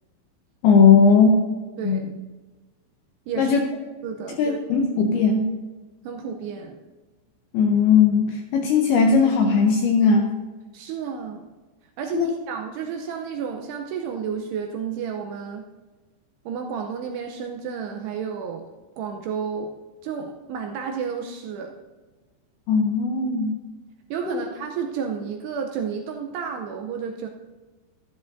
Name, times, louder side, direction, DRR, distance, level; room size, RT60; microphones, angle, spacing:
voice 1, 0.6-1.3 1.8-2.1 3.4-3.6 4.4-5.5 7.5-10.4 12.1-12.3 22.7-23.6 24.3-24.4, left 5 dB, 80° left, 2 dB, 2.3 m, -18 dB
voice 2, 1.8-2.1 3.3-3.5 4.0-4.9 6.0-6.8 10.7-11.4 12.0-15.6 16.5-18.6 19.0-19.7 20.0-21.8 24.1-27.3, right 6 dB, 80° right, 3 dB, 2.5 m, -31 dB
13.0 x 12.5 x 2.6 m, 1.2 s
omnidirectional pair, 5.3 m